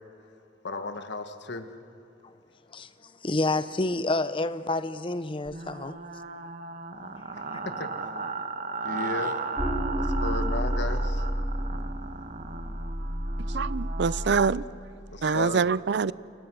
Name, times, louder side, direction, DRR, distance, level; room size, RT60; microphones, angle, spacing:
voice 1, 0.6-1.7 7.3-8.1 8.8-9.4 10.0-11.2 15.1-15.6, left 2 dB, 65° left, 1.5 m, -35 dB
voice 2, 2.7-6.0, left 2 dB, 25° left, 0.8 m, -29 dB
sound 1, 5.5-14.4, right 4 dB, 45° right, 1.4 m, -36 dB
sound 2, 9.6-14.7, equal, 5° left, 2.8 m, -30 dB
voice 3, 13.5-14.6 15.2-16.1, right 5 dB, 65° right, 0.5 m, -25 dB
30.0 x 29.0 x 6.2 m
head